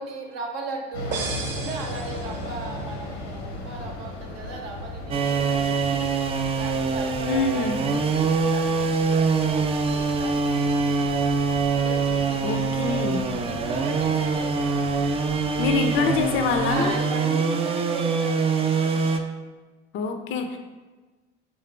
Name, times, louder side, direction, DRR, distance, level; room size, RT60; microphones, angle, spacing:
voice 1, 0.0-6.1 6.5-10.7 11.7-14.5 16.7-19.0, right 3 dB, 60° right, 1 dB, 0.8 m, -37 dB
sound 1, 0.9-17.0, left 1 dB, 75° left, 0.9 m, -37 dB
sound 2, 1.1-2.9, right 4 dB, 35° right, 0.9 m, -34 dB
sound 3, 5.1-19.2, right 5 dB, 20° right, 0.3 m, -24 dB
voice 2, 7.3-7.8 12.4-13.2 15.6-16.9 19.9-20.6, left 5 dB, 40° left, 6 dB, 0.5 m, -25 dB
4.5 x 3.5 x 3.3 m, 1.3 s
figure-of-eight pair, 60°, 34 cm